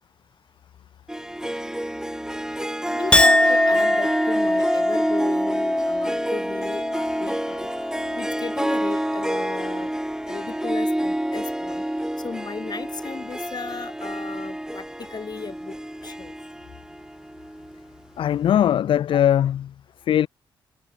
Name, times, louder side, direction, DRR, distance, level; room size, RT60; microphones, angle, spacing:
Harp, 1.1-17.9, right 1 dB, 5° right, 2.3 m, -28 dB
voice 1, 2.9-7.7 8.2-9.9 10.3-11.8 12.2-14.8 15.1-15.8 16.0-16.3 19.1-19.2, left 5 dB, 45° left, 7.3 m, -35 dB
Chink clink, 3.1-9.7 10.1-10.6, left 1 dB, 10° left, 2.1 m, -24 dB
voice 2, 18.2-19.7 20.1-20.3, left 10 dB, 65° left, 0.4 m, -20 dB
supercardioid pair, 50°, 10 cm